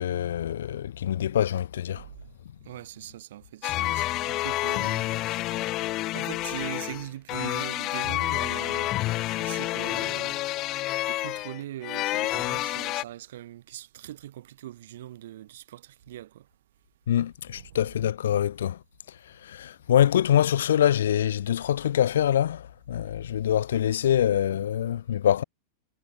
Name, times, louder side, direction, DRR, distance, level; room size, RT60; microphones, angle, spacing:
voice 1, 0.0-2.0 17.1-18.8 19.4-25.4, left 10 dB, 60° left, 1.0 m, -24 dB
voice 2, 2.7-5.1 6.1-9.0 9.4-10.4 11.1-16.5 17.5-17.7 23.0-23.1 24.0-24.1, right 13 dB, 55° right, 2.4 m, -41 dB
sound 1, 3.6-13.0, left 17 dB, 35° left, 0.9 m, -29 dB
figure-of-eight pair, 90°, 0 cm